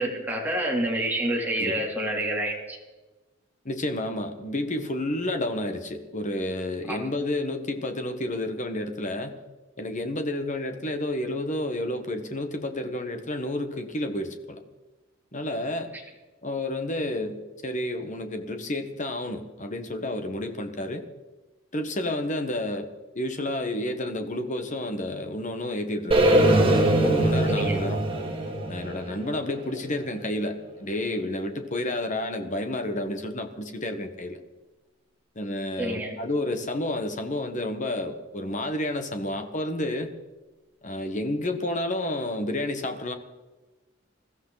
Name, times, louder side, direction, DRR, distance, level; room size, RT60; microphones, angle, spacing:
voice 1, 0.0-2.8 6.9-7.0 27.5-27.8 35.8-36.2, right 1 dB, 10° right, -2 dB, 3.2 m, -28 dB
voice 2, 1.5-1.9 3.6-9.4 9.8-14.6 15.3-15.9 16.4-21.0 21.7-22.9 23.1-28.0 28.7-34.4 35.3-40.1 40.8-43.1, left 1 dB, 40° left, 7 dB, 1.4 m, -30 dB
sound 1, 26.1-30.2, right 1 dB, 25° right, 2.5 m, -22 dB
21.0 x 14.5 x 4.1 m, 1.2 s
head